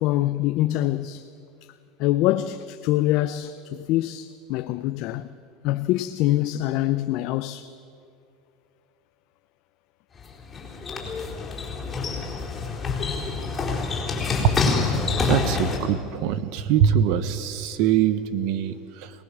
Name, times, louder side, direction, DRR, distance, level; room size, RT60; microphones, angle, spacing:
voice 1, 0.0-1.3 2.0-5.3 5.6-7.7, left 15 dB, 55° left, 0.6 m, -24 dB
sound 1, 10.2-15.8, left 4 dB, 15° left, 4.2 m, -27 dB
voice 2, 15.2-19.1, right 9 dB, 60° right, 1.0 m, -23 dB
22.5 x 19.5 x 7.4 m
supercardioid pair, 150°, 0 cm